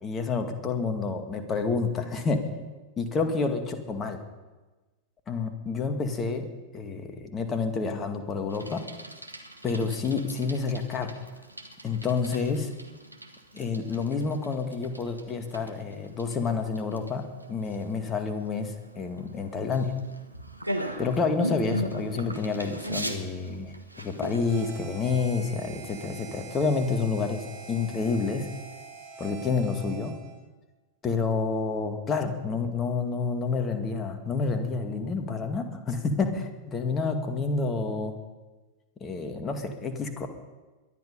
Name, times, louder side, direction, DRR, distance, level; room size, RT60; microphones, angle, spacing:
voice 1, 0.0-2.4 3.0-4.2 5.3-6.5 6.7-8.8 9.6-11.1 11.8-12.7 13.5-20.0 21.0-28.5 29.2-30.2 31.0-38.2 39.0-40.3, left 4 dB, 25° left, 6 dB, 2.0 m, -29 dB
Bicycle, 8.5-25.0, right 1 dB, 90° right, 1.3 m, -39 dB
Harmonica, 24.4-30.4, right 4 dB, 35° right, 4.4 m, -45 dB
22.0 x 11.0 x 5.4 m, 1.2 s
figure-of-eight pair, 90°, 0 cm